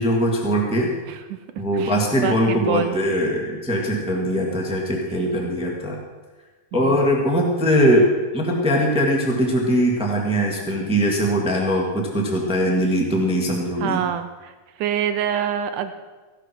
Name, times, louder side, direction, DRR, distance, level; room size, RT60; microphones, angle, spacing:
voice 1, 0.0-0.9 1.6-6.0 6.7-14.0, equal, 5° right, -1 dB, 1.0 m, -21 dB
voice 2, 1.1-1.4 1.7-2.0 2.2-3.0 4.9-5.3 6.7-7.0 13.8-14.5 14.8-15.9, right 9 dB, 75° right, 9 dB, 2.0 m, -26 dB
16.0 x 12.0 x 4.6 m, 1.3 s
omnidirectional pair, 4.0 m